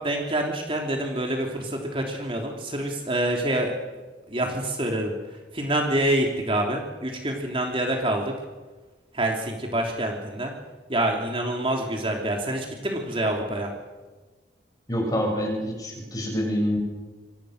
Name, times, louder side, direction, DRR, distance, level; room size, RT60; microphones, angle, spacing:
voice 1, 0.0-3.7 4.3-5.1 5.5-8.3 9.1-10.5 10.9-13.7, right 1 dB, 30° right, 1 dB, 3.2 m, -26 dB
voice 2, 14.9-16.8, equal, 20° left, 1 dB, 7.6 m, -26 dB
28.5 x 23.5 x 6.6 m, 1.3 s
head